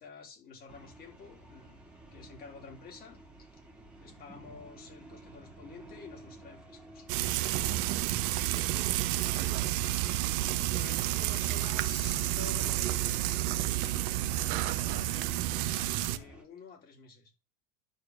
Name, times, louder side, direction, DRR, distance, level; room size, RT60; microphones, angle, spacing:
voice 1, 0.0-1.8 2.1-3.6 4.0-7.1 10.3-17.3, left 5 dB, 30° left, 3.5 m, -50 dB
sound 1, 0.7-16.4, right 2 dB, 5° right, 2.4 m, -52 dB
Frying (food), 7.1-16.2, right 15 dB, 55° right, 1.0 m, -30 dB
voice 2, 7.6-9.8, right 10 dB, 85° right, 2.0 m, -45 dB
11.5 x 4.6 x 6.5 m
supercardioid pair, 150°, 31 cm